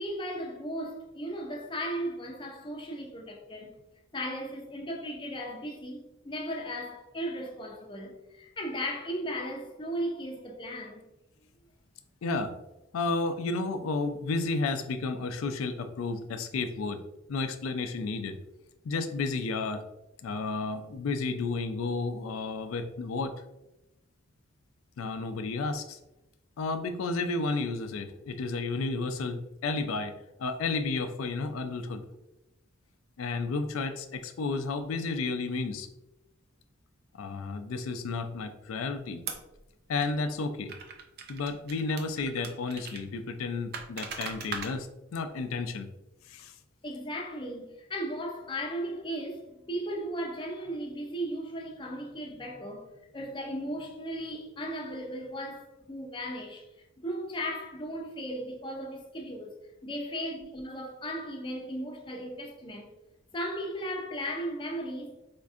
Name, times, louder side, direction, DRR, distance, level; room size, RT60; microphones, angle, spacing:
voice 1, 0.0-3.7 4.1-11.0 46.8-56.7 57.0-59.5 59.8-62.9 63.3-65.2, equal, 25° left, 0.5 m, -36 dB
voice 2, 12.2-12.6 12.9-17.0 17.3-18.4 18.8-19.8 20.2-23.4 25.0-26.0 26.6-30.1 30.4-32.0 33.2-35.9 37.1-39.2 39.9-40.7 41.3-45.9 46.3-46.5, left 3 dB, 90° left, 0.4 m, -32 dB
sound 1, 39.3-39.6 40.0-40.1 40.7-43.0 43.7-44.7, right 5 dB, 50° right, 0.4 m, -39 dB
4.4 x 2.5 x 2.4 m
head